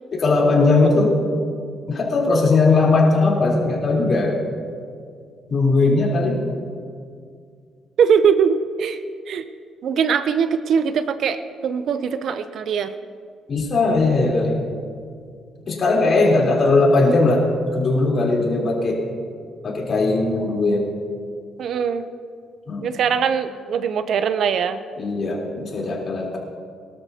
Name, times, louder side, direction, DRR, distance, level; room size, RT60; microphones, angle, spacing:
voice 1, 0.1-1.2 1.9-4.4 5.5-6.4 13.5-14.6 15.7-17.4 17.7-19.0 19.6-20.8 22.7-22.8 25.0-26.4, left 3 dB, 45° left, -2 dB, 3.6 m, -18 dB
voice 2, 8.0-9.0 9.3-9.5 9.8-12.9 21.6-22.0 22.8-24.8, right 7 dB, 65° right, 11 dB, 0.6 m, -21 dB
23.0 x 12.5 x 2.8 m, 2.2 s
cardioid pair, 105°, 0 cm